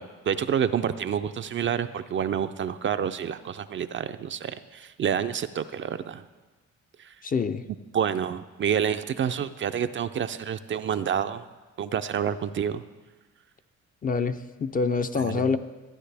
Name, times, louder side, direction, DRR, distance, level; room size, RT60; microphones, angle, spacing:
voice 1, 0.0-6.2 7.0-7.1 7.9-11.4 11.8-12.8 15.2-15.5, right 8 dB, 40° right, 10 dB, 0.4 m, -28 dB
voice 2, 7.2-7.6 14.0-15.6, left 5 dB, 30° left, 10 dB, 0.4 m, -26 dB
13.5 x 9.4 x 3.4 m, 1.3 s
cardioid pair, 90°, 30 cm